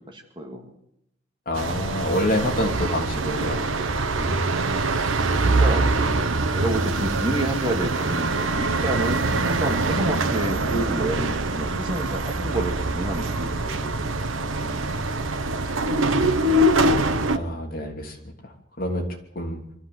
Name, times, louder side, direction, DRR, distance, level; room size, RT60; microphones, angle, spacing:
voice 1, 0.1-0.7 4.0-4.9 5.4-5.9 6.5-15.1, right 1 dB, 25° right, 3 dB, 2.3 m, -30 dB
voice 2, 1.5-3.7 9.3-9.4 17.3-18.2 18.4-18.5 18.8-19.0 19.3-19.6, left 1 dB, 45° left, 2 dB, 3.1 m, -27 dB
sound 1, 1.5-17.4, right 2 dB, 85° right, 1.1 m, -24 dB
23.5 x 14.0 x 7.9 m, 0.80 s
head